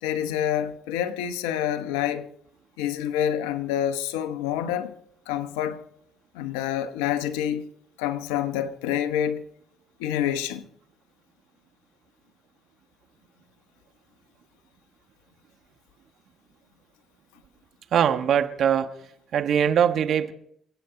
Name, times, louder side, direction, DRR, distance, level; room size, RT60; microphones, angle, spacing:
voice 1, 0.0-2.3 2.8-4.9 5.3-5.8 6.3-7.6 8.0-9.4 10.0-10.6, left 10 dB, 90° left, 1.0 m, -27 dB
voice 2, 17.9-18.9 19.3-20.3, right 8 dB, 65° right, 1.3 m, -21 dB
28.0 x 9.3 x 3.9 m
supercardioid pair, 60°, 0 cm